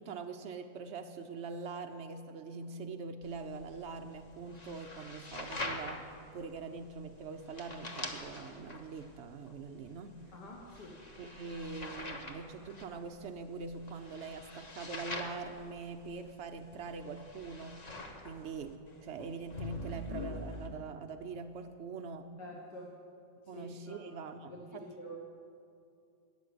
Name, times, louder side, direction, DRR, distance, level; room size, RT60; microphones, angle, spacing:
voice 1, 0.0-6.0 6.3-10.2 11.2-17.8 18.2-22.3 23.5-24.9, right 4 dB, 80° right, 5 dB, 0.6 m, -43 dB
sound 1, 3.2-20.7, left 2 dB, 30° left, 0.9 m, -45 dB
voice 2, 10.3-11.0 22.4-22.9 23.4-24.0 24.5-25.2, equal, 65° left, -2 dB, 2.0 m, -47 dB
16.0 x 7.3 x 9.6 m, 2.5 s
omnidirectional pair, 2.0 m